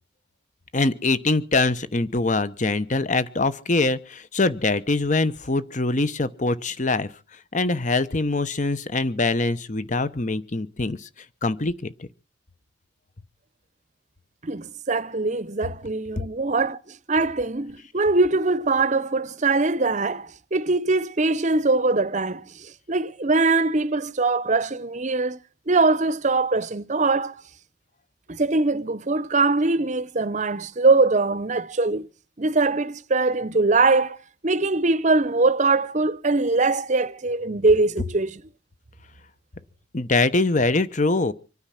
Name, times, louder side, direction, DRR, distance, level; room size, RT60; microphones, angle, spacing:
voice 1, 0.7-7.1 7.5-11.1 11.4-11.9 16.2-16.3 39.9-41.3, left 3 dB, 40° left, 0.9 m, -23 dB
voice 2, 14.4-25.4 25.7-27.4 28.3-32.1 32.4-34.2 34.4-38.4, right 3 dB, 35° right, 0.7 m, -22 dB
25.5 x 9.6 x 5.8 m
head